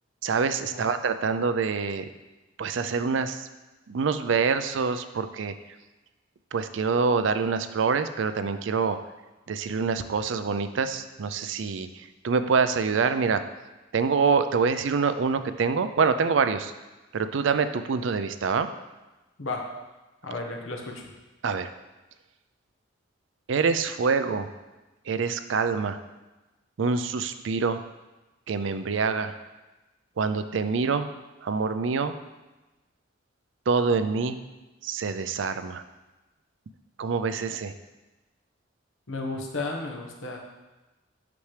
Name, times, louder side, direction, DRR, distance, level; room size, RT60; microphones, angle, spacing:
voice 1, 0.2-2.1 2.6-3.5 3.9-5.5 6.5-9.0 9.5-13.4 13.9-16.7 17.1-18.7 21.4-21.7 23.5-24.5 25.1-26.0 26.8-27.8 28.5-29.3 30.2-31.1 31.4-32.1 33.7-34.4 34.8-35.8 37.0-37.7, right 5 dB, 75° right, 10 dB, 0.4 m, -25 dB
voice 2, 20.2-21.1 39.1-40.4, left 3 dB, 90° left, 1 dB, 1.2 m, -33 dB
8.5 x 6.0 x 3.3 m, 1.1 s
head